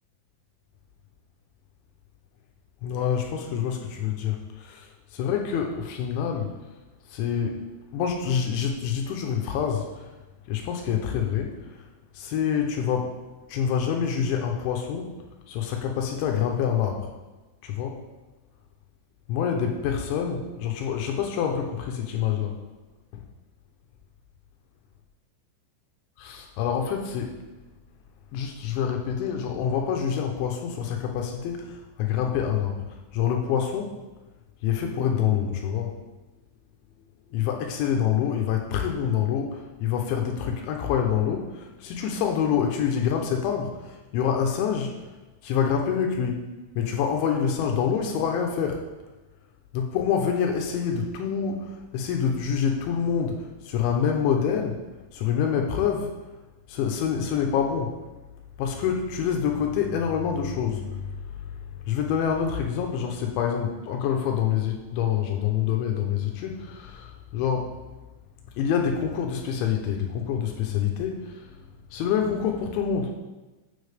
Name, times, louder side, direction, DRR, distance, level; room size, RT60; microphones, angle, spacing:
voice 1, 2.8-6.6 7.1-7.7 7.9-10.1 10.5-11.9 12.1-13.2 13.5-15.1 15.5-17.1 17.6-18.0 19.3-22.6 26.2-27.4 28.3-33.9 34.6-35.9 37.3-45.0 45.4-48.8 49.7-54.8 55.1-56.1 56.7-58.0 58.6-61.2 61.9-67.7 68.5-71.5 71.9-73.2, left 8 dB, 80° left, 2 dB, 3.1 m, -26 dB
13.0 x 7.0 x 3.5 m, 1.1 s
omnidirectional pair, 5.6 m